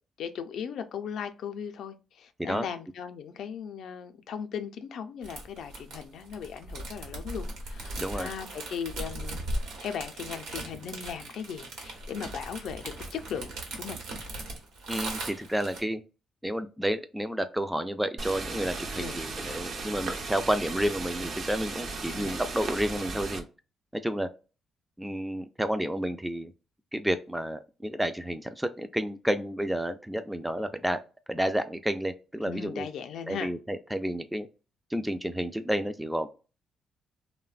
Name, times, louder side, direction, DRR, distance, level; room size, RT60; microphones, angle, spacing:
voice 1, 0.2-9.4 9.8-14.0 19.0-19.2 22.1-22.4 32.4-33.5, left 7 dB, 70° left, 0.4 m, -38 dB
sound 1, 5.2-15.8, right 1 dB, 85° right, 1.0 m, -38 dB
voice 2, 8.0-8.3 14.9-16.0 16.4-23.4 23.9-24.3 25.0-26.5 26.9-31.0 31.3-32.9 33.3-34.5 34.9-36.3, equal, 5° right, 0.3 m, -30 dB
sound 2, 18.2-23.4, right 3 dB, 55° right, 0.6 m, -36 dB
3.2 x 2.1 x 2.3 m
cardioid pair, 90°, 0 cm